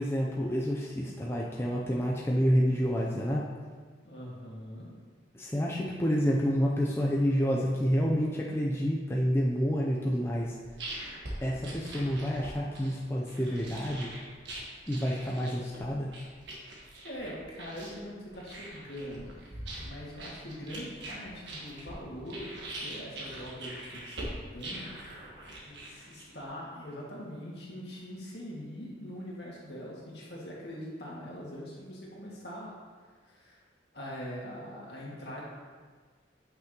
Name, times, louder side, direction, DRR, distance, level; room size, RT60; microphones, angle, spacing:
voice 1, 0.0-3.4 5.3-10.5 11.4-14.1 14.9-16.1, equal, 15° left, -3 dB, 0.5 m, -28 dB
voice 2, 4.0-4.9 17.0-19.5 19.8-22.5 22.8-25.2 25.6-32.7 33.2-33.6 33.9-35.4, equal, 60° left, -5 dB, 1.9 m, -42 dB
sound 1, 10.4-26.5, right 1 dB, 70° right, 1.5 m, -43 dB
8.5 x 5.8 x 3.0 m, 1.5 s
head